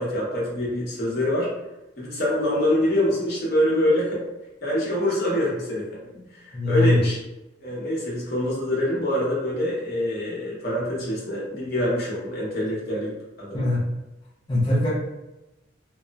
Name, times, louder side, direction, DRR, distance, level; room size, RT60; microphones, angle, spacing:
voice 1, 0.0-1.5 2.0-4.2 4.6-5.8 6.3-7.2 7.6-13.1 13.4-13.7, left 1 dB, 55° left, -6 dB, 0.9 m, -25 dB
voice 2, 6.5-7.0 13.5-13.8 14.5-14.9, left 2 dB, 20° left, -9 dB, 0.5 m, -21 dB
2.9 x 2.0 x 2.3 m, 0.98 s
head